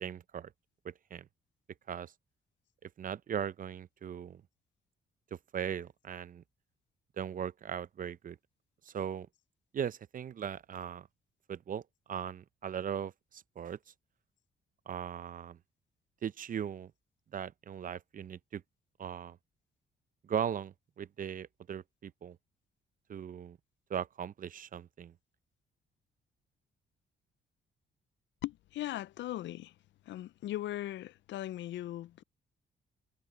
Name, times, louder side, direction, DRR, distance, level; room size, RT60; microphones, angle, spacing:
voice 1, 0.0-0.5 0.8-1.3 1.9-2.1 2.8-4.4 5.3-6.4 7.2-8.4 8.8-9.3 9.7-11.1 11.5-11.8 12.1-13.8 14.9-15.6 16.2-16.9 17.3-18.6 19.0-19.4 20.2-22.4 23.1-23.6 23.9-25.1, right 8 dB, 45° right, 0.6 m, -38 dB
voice 2, 28.4-29.7 30.1-32.2, left 14 dB, 65° left, 0.4 m, -39 dB
cardioid pair, 90°, 20 cm